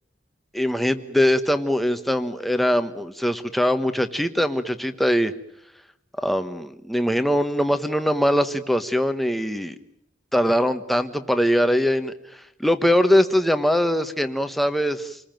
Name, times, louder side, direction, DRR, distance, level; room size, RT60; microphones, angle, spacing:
voice 1, 0.5-5.3 6.2-9.7 10.3-12.1 12.6-15.2, equal, ahead, 8 dB, 1.2 m, -22 dB
28.5 x 20.0 x 9.1 m, 0.79 s
head